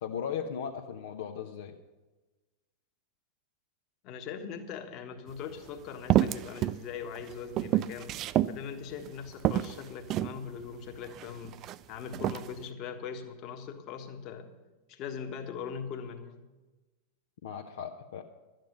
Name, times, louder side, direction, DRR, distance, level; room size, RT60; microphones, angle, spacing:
voice 1, 0.0-1.7 17.4-18.2, left 7 dB, 60° left, 2 dB, 0.8 m, -37 dB
voice 2, 4.0-14.5 14.9-16.4, left 6 dB, 40° left, 6 dB, 1.4 m, -41 dB
sound 1, 5.3-5.4 6.1-6.8 7.2-8.6 9.0-9.1 9.4-10.4 11.1-11.8 12.1-12.5, right 13 dB, 35° right, 0.3 m, -28 dB
12.5 x 9.2 x 6.7 m, 1.2 s
figure-of-eight pair, 90°, 0 cm